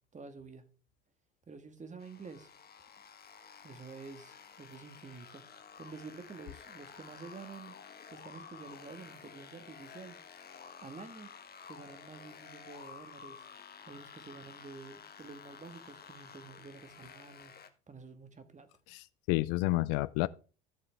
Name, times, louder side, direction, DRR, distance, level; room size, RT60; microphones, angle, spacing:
voice 1, 0.1-0.7 1.5-2.5 3.6-5.4 5.8-7.8 8.1-10.2 10.8-11.3 11.7-13.4 13.9-17.5 17.9-18.7, right 4 dB, 20° right, 1.7 m, -49 dB
sound 1, 2.0-17.7, left 6 dB, 30° left, 1.5 m, -52 dB
voice 2, 18.9-20.3, left 19 dB, 60° left, 0.5 m, -30 dB
14.5 x 6.8 x 3.4 m
hypercardioid pair, 65°, 33 cm